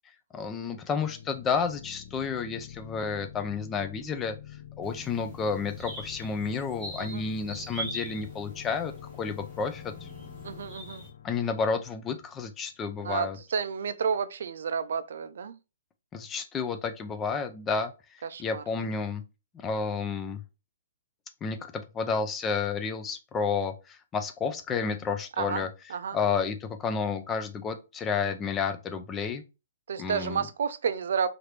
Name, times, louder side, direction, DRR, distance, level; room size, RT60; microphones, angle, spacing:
voice 1, 0.3-4.3 4.8-8.9 9.2-10.1 11.2-13.4 16.1-17.9 18.4-19.2 19.5-20.4 21.4-25.7 26.1-29.4 30.0-30.5, left 5 dB, 10° left, 0.3 m, -31 dB
sound 1, 1.0-12.6, left 10 dB, 75° left, 0.6 m, -46 dB
sound 2, 4.8-11.1, right 2 dB, 10° right, 0.9 m, -43 dB
voice 2, 10.4-11.0 13.0-15.6 18.2-18.6 25.4-25.6 25.9-26.2 29.9-31.3, right 6 dB, 60° right, 0.4 m, -31 dB
3.0 x 2.5 x 3.2 m
hypercardioid pair, 170°, 0 cm